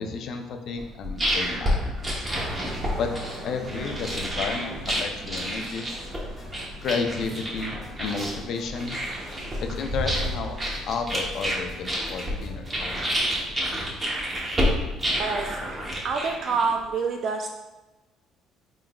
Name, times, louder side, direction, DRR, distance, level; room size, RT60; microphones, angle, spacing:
voice 1, 0.0-2.2 3.0-3.1 3.4-5.9 6.8-9.0 9.6-10.6 10.9-13.1, left 5 dB, 60° left, 5 dB, 0.4 m, -32 dB
sound 1, 0.8-16.9, equal, 20° right, 0.8 m, -29 dB
sound 2, 2.2-15.1, right 3 dB, 70° right, 1.4 m, -44 dB
sound 3, 5.9-13.6, left 1 dB, 15° left, 1.0 m, -49 dB
voice 2, 15.2-17.5, right 4 dB, 50° right, 3 dB, 0.3 m, -27 dB
4.0 x 3.6 x 2.2 m, 1.1 s
cardioid pair, 130°, 0 cm